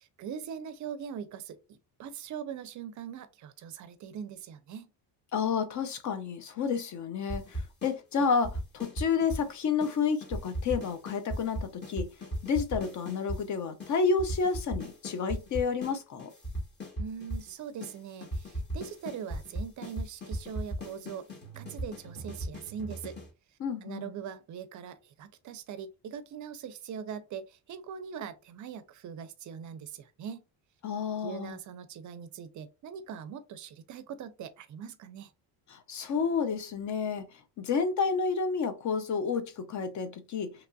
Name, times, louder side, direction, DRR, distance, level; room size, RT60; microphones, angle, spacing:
voice 1, 0.0-4.9 17.0-23.2 23.8-30.4 31.2-35.3, right 7 dB, 45° right, 0.4 m, -41 dB
voice 2, 5.3-12.1 12.4-16.3 23.6-24.1 30.8-31.6 35.7-40.5, left 5 dB, 40° left, 0.6 m, -30 dB
sound 1, 7.3-9.5 9.8-9.9 10.2-13.4 13.8-13.9 14.2-15.9 16.2-17.5 17.8-17.9 18.2-23.3, right 1 dB, 25° left, 1.1 m, -37 dB
2.9 x 2.6 x 2.2 m
cardioid pair, 115°, 44 cm